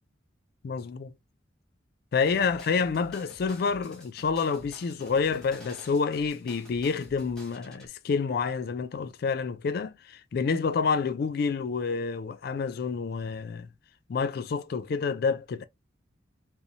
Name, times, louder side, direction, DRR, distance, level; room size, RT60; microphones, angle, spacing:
voice 1, 0.6-1.1 2.1-13.7 14.1-15.6, left 5 dB, 55° left, 0.3 m, -28 dB
sound 1, 2.2-7.9, right 1 dB, 5° left, 0.9 m, -50 dB
2.5 x 2.0 x 2.8 m
head